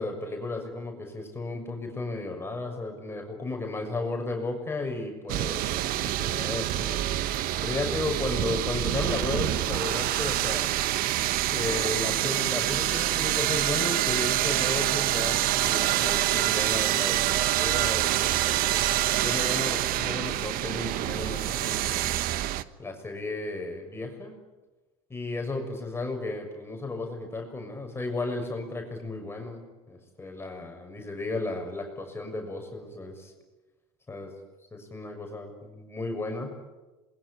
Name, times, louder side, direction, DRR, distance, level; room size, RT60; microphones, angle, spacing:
voice 1, 0.0-7.0 7.6-10.7 11.5-18.8 19.2-22.2 22.8-24.3 25.1-33.3 34.1-34.3 34.7-36.5, left 2 dB, 15° left, 3 dB, 6.5 m, -34 dB
sound 1, 5.3-22.6, right 14 dB, 55° right, 1.2 m, -26 dB
27.0 x 22.0 x 10.0 m, 1.1 s
supercardioid pair, 95°, 17 cm